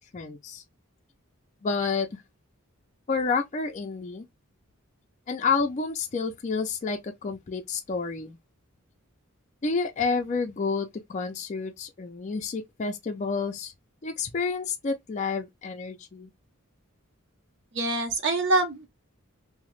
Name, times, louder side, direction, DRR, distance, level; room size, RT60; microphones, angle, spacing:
voice 1, 0.1-0.6 1.6-2.2 3.1-4.3 5.3-8.4 9.6-13.7 14.0-16.3, left 4 dB, 35° left, 0.4 m, -29 dB
voice 2, 17.7-18.9, right 2 dB, 60° right, 0.7 m, -25 dB
2.9 x 2.0 x 3.0 m
head